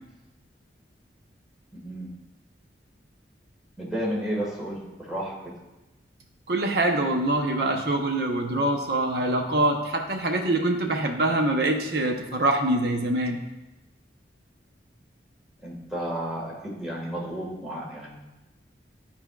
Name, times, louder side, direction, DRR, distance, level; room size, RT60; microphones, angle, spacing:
voice 1, 1.7-2.1 3.8-5.3 15.6-18.2, equal, 5° right, -6 dB, 1.5 m, -32 dB
voice 2, 6.5-13.4, right 1 dB, 60° right, 2 dB, 0.8 m, -24 dB
11.0 x 4.4 x 2.3 m, 1.0 s
head